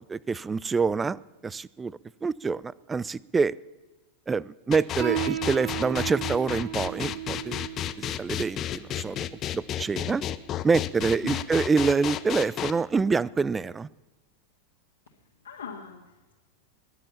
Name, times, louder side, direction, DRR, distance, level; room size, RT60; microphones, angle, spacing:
voice 1, 0.0-3.5 4.3-7.6 8.0-9.2 9.5-10.2 10.6-13.9, right 4 dB, 15° right, 23 dB, 0.4 m, -26 dB
sound 1, 4.7-12.7, left 12 dB, 30° left, 0.7 m, -32 dB
Piano, 5.0-12.0, right 11 dB, 45° right, 3.4 m, -36 dB
voice 2, 15.4-16.3, left 6 dB, 70° left, -3 dB, 1.9 m, -40 dB
20.5 x 7.7 x 7.1 m, 1.2 s
figure-of-eight pair, 90°, 0 cm